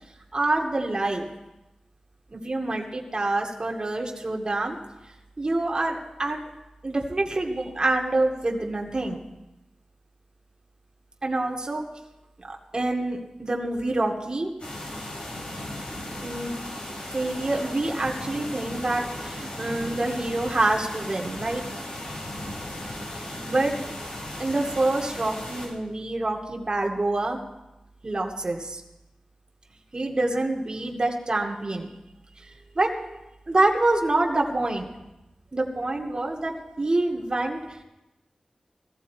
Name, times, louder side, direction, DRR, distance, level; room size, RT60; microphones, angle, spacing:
voice 1, 0.3-1.3 2.3-4.8 5.4-6.4 6.8-9.2 11.2-11.8 12.4-14.5 16.2-16.6 17.1-21.6 23.1-23.8 24.4-27.4 28.0-28.8 29.9-31.9 32.4-34.9 35.5-37.8, right 2 dB, 40° right, 0 dB, 2.3 m, -26 dB
sound 1, 14.6-25.7, left 1 dB, 60° left, 5.3 m, -36 dB
19.5 x 15.0 x 4.6 m, 0.96 s
wide cardioid pair, 80°, 2 cm